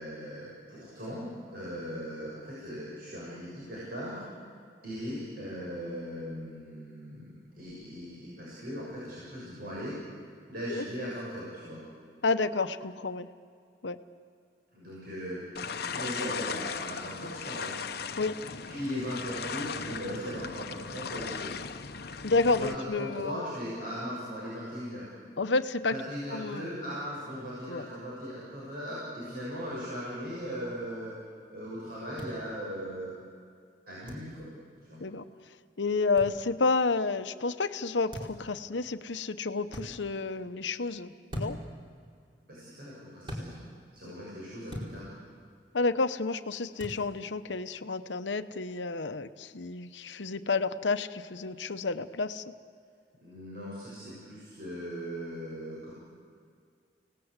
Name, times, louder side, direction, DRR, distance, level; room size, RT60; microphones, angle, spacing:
voice 1, 0.0-4.2 4.8-10.0 10.5-11.8 14.7-17.7 18.7-21.5 22.6-25.1 25.9-31.2 31.5-33.1 33.9-34.5 34.9-35.0 42.5-43.6 43.9-45.1 53.2-55.9, equal, 55° right, -7 dB, 7.2 m, -38 dB
voice 2, 12.2-13.3 13.8-14.0 18.2-18.3 22.2-23.4 25.4-25.9 26.3-26.7 27.7-27.9 35.0-35.2 35.8-41.6 45.7-52.5, left 3 dB, 85° left, 10 dB, 0.9 m, -30 dB
sound 1, 15.6-22.8, left 5 dB, 60° left, 0.9 m, -37 dB
sound 2, 32.2-32.3 34.1-34.3 36.2-36.3 38.1-38.4 39.7-39.9 41.3-41.7 43.2-43.5 44.7-44.9 46.8-47.0, equal, 30° right, 4.6 m, -38 dB
29.5 x 18.5 x 8.2 m, 2.2 s
head